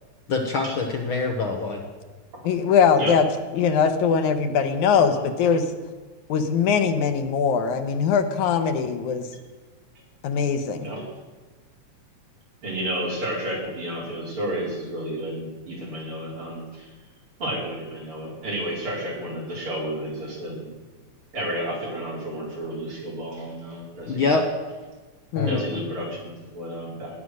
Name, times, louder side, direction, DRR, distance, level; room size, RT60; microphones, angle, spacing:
voice 1, 0.3-1.8 24.1-24.5 25.4-25.7, left 3 dB, 55° left, 2 dB, 1.9 m, -25 dB
voice 2, 2.4-3.2 3.5-5.6 6.3-9.3 10.2-10.9 25.3-25.6, left 6 dB, 85° left, 7 dB, 2.6 m, -21 dB
voice 3, 12.6-16.9 17.4-20.7 21.3-24.2 25.5-27.2, right 1 dB, 45° right, -3 dB, 5.1 m, -31 dB
18.5 x 9.6 x 6.4 m, 1.3 s
omnidirectional pair, 3.3 m